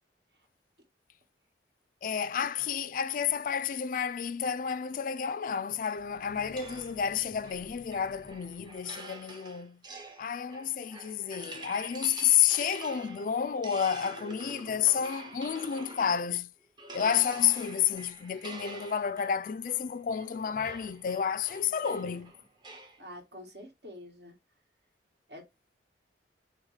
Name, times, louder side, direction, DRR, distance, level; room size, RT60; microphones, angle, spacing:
voice 1, 2.0-9.8 10.2-16.5 16.9-22.3, left 8 dB, 50° left, 0.3 m, -30 dB
sound 1, 5.9-9.2 9.8-10.1 10.4-10.8 11.1-11.2 12.0-12.1 12.6-12.7 13.2-13.6 14.5-14.6 17.4-18.4 20.4-21.5 22.0-22.7, right 1 dB, 45° right, 1.0 m, -56 dB
sound 2, 6.6-16.4 16.8-23.0, right 2 dB, 25° right, 0.6 m, -47 dB
voice 2, 21.6-22.2 23.0-24.3 25.3-25.4, left 1 dB, 65° right, 1.5 m, -47 dB
6.2 x 2.1 x 3.2 m
head